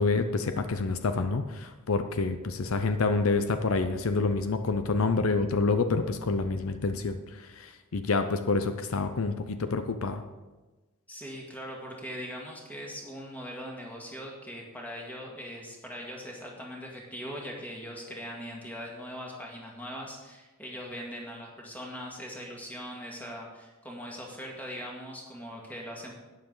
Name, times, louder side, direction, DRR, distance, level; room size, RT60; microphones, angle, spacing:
voice 1, 0.0-10.2, left 3 dB, 70° left, 9 dB, 0.6 m, -28 dB
voice 2, 11.1-26.1, equal, 10° left, -2 dB, 2.0 m, -41 dB
11.5 x 9.4 x 3.9 m, 1.2 s
head